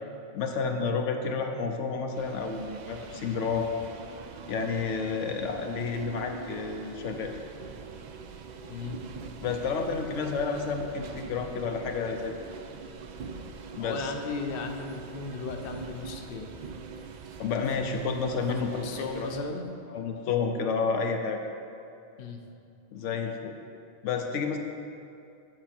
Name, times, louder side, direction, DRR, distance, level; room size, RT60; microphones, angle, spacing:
voice 1, 0.3-3.7 4.5-7.3 9.4-12.3 13.8-14.1 17.4-18.9 19.1-19.4 19.9-21.4 22.9-23.5 24.0-24.6, left 5 dB, 80° left, 4 dB, 1.0 m, -30 dB
sound 1, 2.1-19.4, right 5 dB, 60° right, 0.4 m, -43 dB
voice 2, 13.8-16.5 18.5-19.7 22.2-22.4, left 4 dB, 55° left, 3 dB, 0.8 m, -36 dB
7.7 x 6.9 x 4.3 m, 2.6 s
omnidirectional pair, 1.2 m